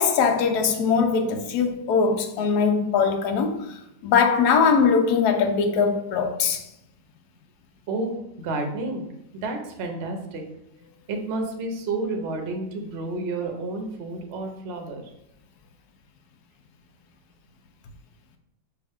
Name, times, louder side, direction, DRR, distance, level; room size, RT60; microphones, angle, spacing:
voice 1, 0.0-6.7, left 5 dB, 70° left, 1.1 m, -21 dB
voice 2, 7.9-9.1 9.4-10.4 11.1-15.0, right 2 dB, 50° right, 0.8 m, -30 dB
5.8 x 2.5 x 3.5 m
omnidirectional pair, 1.8 m